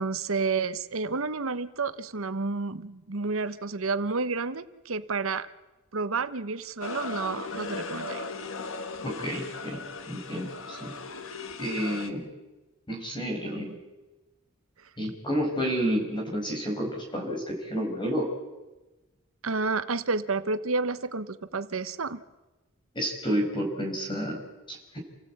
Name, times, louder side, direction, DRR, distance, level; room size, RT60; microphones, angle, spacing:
voice 1, 0.0-5.5 5.9-8.2 19.4-22.2, right 4 dB, 90° right, 13 dB, 1.0 m, -30 dB
sound 1, 6.8-12.1, left 3 dB, 75° left, 1.6 m, -37 dB
voice 2, 9.0-9.8 10.1-10.9 11.6-12.3 12.9-13.8 15.0-18.3 22.9-25.0, equal, 25° left, 1 dB, 5.3 m, -30 dB
29.0 x 16.0 x 8.6 m, 1.1 s
head